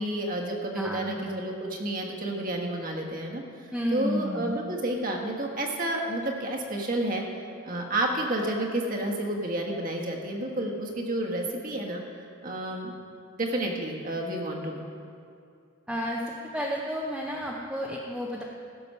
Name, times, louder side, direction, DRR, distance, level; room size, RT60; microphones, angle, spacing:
voice 1, 0.0-7.3 7.6-12.0 12.4-12.9 13.4-14.9, right 1 dB, 45° right, 0 dB, 1.4 m, -30 dB
voice 2, 0.8-1.4 3.7-4.6 15.9-16.2 16.5-18.4, equal, 5° right, -4 dB, 0.7 m, -31 dB
15.0 x 6.9 x 5.5 m, 2.5 s
head